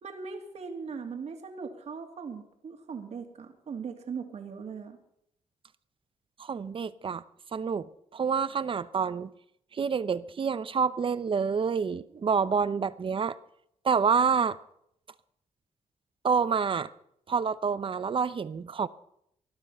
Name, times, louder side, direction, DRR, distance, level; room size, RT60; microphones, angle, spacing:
voice 1, 0.0-5.0, right 5 dB, 60° right, 2.7 m, -39 dB
voice 2, 6.4-7.2 7.5-9.3 9.7-13.3 13.8-14.6 16.2-16.9 17.3-18.9, right 6 dB, 45° right, 0.8 m, -28 dB
20.0 x 12.0 x 5.6 m
cardioid pair, 85°, 13 cm